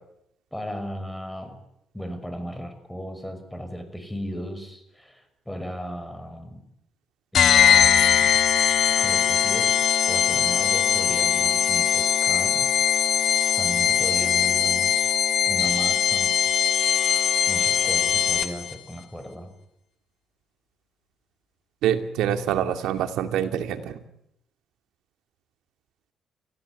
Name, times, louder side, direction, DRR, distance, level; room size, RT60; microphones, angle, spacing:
voice 1, 0.5-1.6 1.9-6.6 7.3-8.4 9.0-9.8 10.1-12.7 12.9-13.1 13.6-15.1 15.5-16.3 17.5-19.5, equal, 5° left, 9 dB, 5.9 m, -36 dB
sound 1, 7.3-18.7, left 9 dB, 65° left, 1.9 m, -21 dB
voice 2, 21.8-24.0, right 10 dB, 90° right, 7 dB, 2.5 m, -25 dB
29.5 x 17.0 x 9.7 m, 0.80 s
cardioid pair, 90°, 0 cm